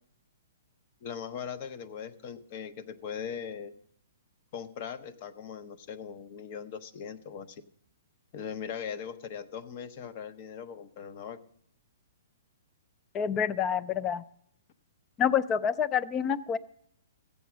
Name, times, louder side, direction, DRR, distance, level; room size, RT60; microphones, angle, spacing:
voice 1, 1.0-3.7 4.5-7.6 8.3-11.4, left 7 dB, 35° left, 11 dB, 0.8 m, -40 dB
voice 2, 13.1-14.2 15.2-16.6, left 8 dB, 20° left, 16 dB, 0.4 m, -27 dB
14.0 x 8.4 x 6.1 m, 0.68 s
hypercardioid pair, 160°, 0 cm